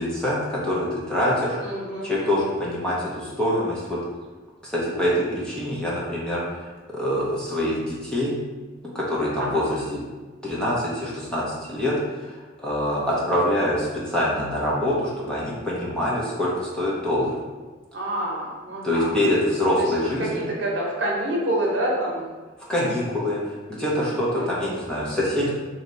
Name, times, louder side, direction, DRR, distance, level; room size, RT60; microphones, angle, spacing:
voice 1, 0.0-1.7 2.0-4.0 4.6-6.7 6.9-8.4 8.9-10.0 10.4-17.3 18.8-20.4 22.7-25.5, left 1 dB, 5° left, -7 dB, 0.7 m, -25 dB
voice 2, 1.6-2.5 9.4-9.6 17.9-19.2 19.8-19.9 20.2-22.3 24.3-24.8, right 1 dB, 60° right, -3 dB, 1.0 m, -28 dB
3.2 x 2.8 x 3.9 m, 1.3 s
head